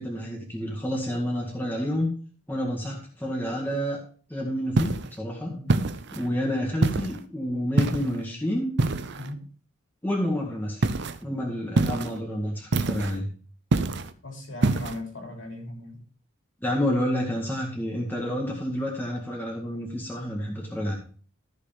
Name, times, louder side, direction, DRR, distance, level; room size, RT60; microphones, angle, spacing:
voice 1, 0.0-2.1 2.5-4.0 4.3-5.5 6.2-8.7 10.0-10.8 11.2-13.3 16.6-20.9, equal, 10° left, 1.9 m, -29 dB
sound 1, 4.8-5.1 5.7-6.3 6.8-7.2 7.8-8.2 8.8-9.3 10.8-11.2 11.8-12.2 12.7-13.2 13.7-14.1 14.6-15.0, right 2 dB, 50° right, 0.6 m, -25 dB
voice 2, 5.5-5.9 9.2-9.4 14.2-16.0, left 1 dB, 60° left, 3.1 m, -38 dB
14.0 x 6.5 x 3.5 m
head